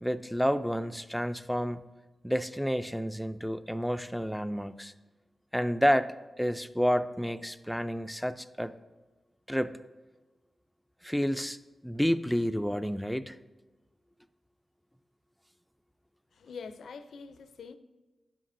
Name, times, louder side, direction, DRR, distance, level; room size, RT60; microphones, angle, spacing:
voice 1, 0.0-1.9 2.2-4.9 5.5-8.7 9.5-9.7 11.0-11.6 11.8-13.4, equal, ahead, 11 dB, 0.3 m, -30 dB
voice 2, 16.3-17.8, left 5 dB, 85° left, 10 dB, 0.4 m, -44 dB
10.0 x 7.6 x 2.6 m, 1.2 s
cardioid pair, 70°, 0 cm